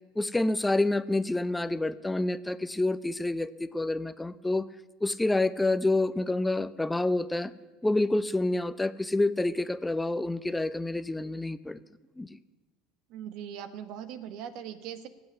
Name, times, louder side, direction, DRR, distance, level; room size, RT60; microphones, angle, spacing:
voice 1, 0.2-4.7 5.0-7.5 7.8-11.8 12.2-12.4, left 2 dB, 10° left, 14 dB, 0.6 m, -28 dB
voice 2, 13.1-15.1, right 9 dB, 65° right, 12 dB, 1.3 m, -40 dB
17.0 x 8.1 x 9.5 m, 1.2 s
hypercardioid pair, 85°, 0 cm